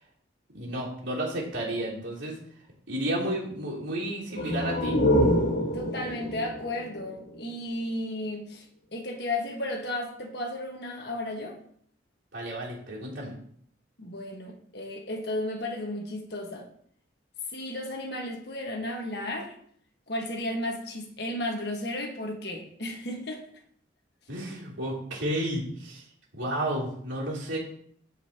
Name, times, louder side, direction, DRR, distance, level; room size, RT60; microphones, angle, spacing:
voice 1, 0.5-2.4 2.9-4.9 12.3-13.3 24.3-26.0 26.3-27.6, right 1 dB, 80° right, -4 dB, 3.3 m, -32 dB
sound 1, 4.3-7.9, equal, 75° left, 2.0 m, -27 dB
voice 2, 5.7-8.6 8.9-11.6 14.0-16.6 17.5-19.6 20.1-23.4, left 1 dB, 60° left, 1 dB, 1.6 m, -34 dB
14.5 x 5.4 x 3.0 m, 0.64 s
head